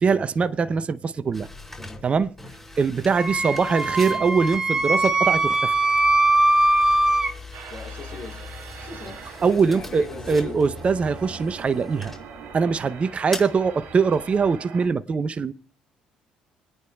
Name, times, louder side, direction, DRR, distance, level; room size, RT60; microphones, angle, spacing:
voice 1, 0.0-1.5 2.0-2.3 2.8-5.7 9.4-12.1 12.5-15.5, right 5 dB, 40° right, 0.6 m, -22 dB
sound 1, 1.3-14.6, left 2 dB, 10° left, 4.8 m, -41 dB
Wind instrument woodwind instrument, 3.2-7.3, right 2 dB, 20° right, 1.1 m, -21 dB
sound 2, 7.5-14.9, right 7 dB, 70° right, 1.6 m, -42 dB
voice 2, 7.7-8.5 8.8-10.6, left 4 dB, 55° left, 3.7 m, -40 dB
27.0 x 9.5 x 2.3 m
hypercardioid pair, 55°, 3 cm